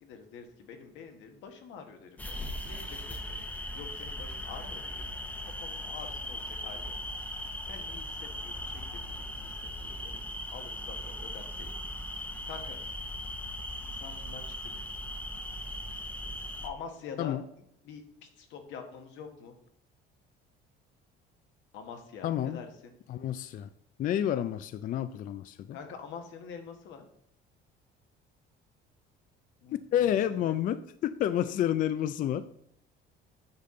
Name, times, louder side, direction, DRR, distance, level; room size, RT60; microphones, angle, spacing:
voice 1, 0.0-3.2 3.7-5.0 5.4-6.9 7.7-9.5 9.8-11.7 12.5-12.8 14.0-14.4 16.6-17.3 17.8-18.0 18.4-19.5 21.7-22.9 25.7-27.0 29.6-30.1 30.4-30.5, left 6 dB, 75° left, 1.5 m, -46 dB
sound 1, 2.2-16.7, left 1 dB, 10° left, 0.8 m, -38 dB
voice 2, 22.2-22.6 23.1-23.7 24.0-25.8 29.9-32.5, left 11 dB, 45° left, 0.4 m, -29 dB
8.7 x 5.7 x 3.8 m
cardioid pair, 125°, 20 cm